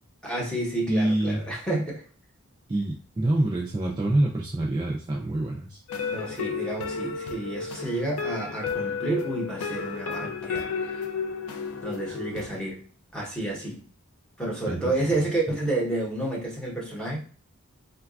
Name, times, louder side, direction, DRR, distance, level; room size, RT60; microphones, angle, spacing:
voice 1, 0.2-2.0 6.1-11.0 11.8-12.8 13.1-13.8 14.4-17.2, right 2 dB, 5° left, -4 dB, 0.8 m, -30 dB
voice 2, 0.9-1.4 2.7-5.8 14.7-14.9, right 1 dB, 20° right, -2 dB, 0.3 m, -26 dB
sound 1, 5.9-12.5, left 5 dB, 75° left, 0.4 m, -32 dB
3.9 x 2.2 x 2.3 m, 0.41 s
head